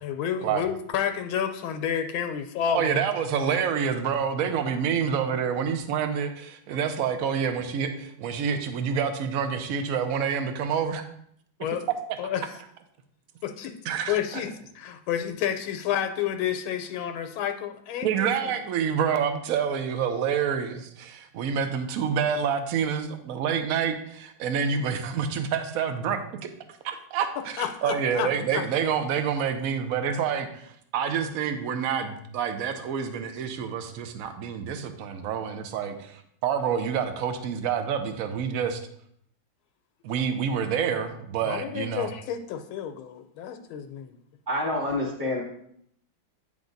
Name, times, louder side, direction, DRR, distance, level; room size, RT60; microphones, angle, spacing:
voice 1, 0.0-3.0 11.6-11.9 12.2-12.6 13.4-18.6 27.6-28.6 41.4-44.1, left 9 dB, 85° left, 6 dB, 1.4 m, -30 dB
voice 2, 2.7-11.0 13.9-14.4 18.0-26.5 26.8-27.5 27.8-38.8 40.0-42.1, right 7 dB, 70° right, 7 dB, 0.8 m, -27 dB
voice 3, 44.5-45.4, left 1 dB, 10° right, -6 dB, 1.3 m, -27 dB
9.1 x 3.6 x 3.9 m, 0.70 s
omnidirectional pair, 2.2 m